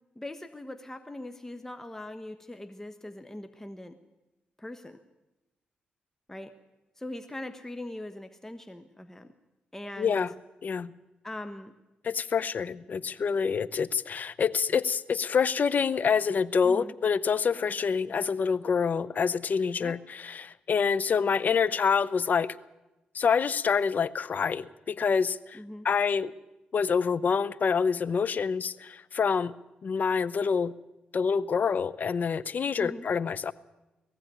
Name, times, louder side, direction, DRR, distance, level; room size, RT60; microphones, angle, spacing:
voice 1, 0.1-4.0 4.6-5.0 6.3-6.5 7.0-9.3 9.7-10.2 11.2-11.7 16.6-16.9 19.8-19.9 25.5-25.9 32.8-33.1, left 1 dB, 15° left, 8 dB, 1.2 m, -41 dB
voice 2, 10.0-10.3 10.6-10.9 12.0-22.6 23.1-25.6 25.8-26.3 26.7-29.5 29.8-30.7 31.1-33.5, left 6 dB, 55° left, 18 dB, 0.8 m, -27 dB
19.0 x 15.0 x 9.1 m, 1.0 s
cardioid pair, 65°, 3 cm